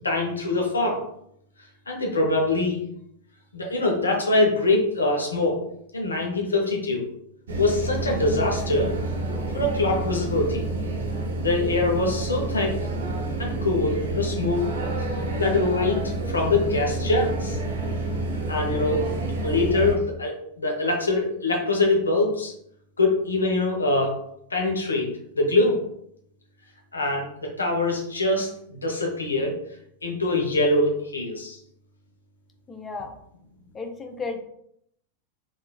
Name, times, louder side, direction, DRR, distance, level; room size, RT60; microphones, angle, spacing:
voice 1, 0.0-1.0 1.9-2.8 3.5-5.6 5.9-7.0 7.6-8.9 9.5-10.6 11.4-12.7 13.4-14.7 15.0-17.6 18.5-19.0 19.4-22.5 23.0-24.2 24.5-25.1 25.3-25.8 26.9-29.5 30.0-31.6, left 2 dB, 75° left, 0 dB, 0.7 m, -24 dB
sound 1, 7.5-20.0, right 2 dB, 65° right, 0.5 m, -29 dB
voice 2, 32.7-33.1 33.7-34.4, left 4 dB, 20° left, 5 dB, 0.5 m, -33 dB
3.7 x 2.5 x 2.3 m, 0.72 s
figure-of-eight pair, 90°, 0 cm